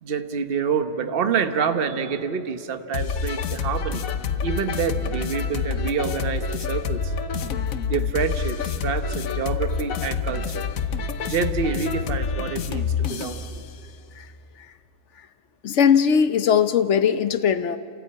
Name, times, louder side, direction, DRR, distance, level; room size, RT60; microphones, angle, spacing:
voice 1, 0.0-4.0 4.4-7.1 7.9-10.6 11.2-13.6, right 6 dB, 45° right, 8 dB, 1.2 m, -27 dB
sound 1, 2.9-13.5, left 5 dB, 80° left, 1.3 m, -27 dB
voice 2, 15.6-17.8, left 7 dB, 60° left, 11 dB, 1.0 m, -19 dB
29.5 x 14.5 x 8.7 m, 2.5 s
omnidirectional pair, 1.4 m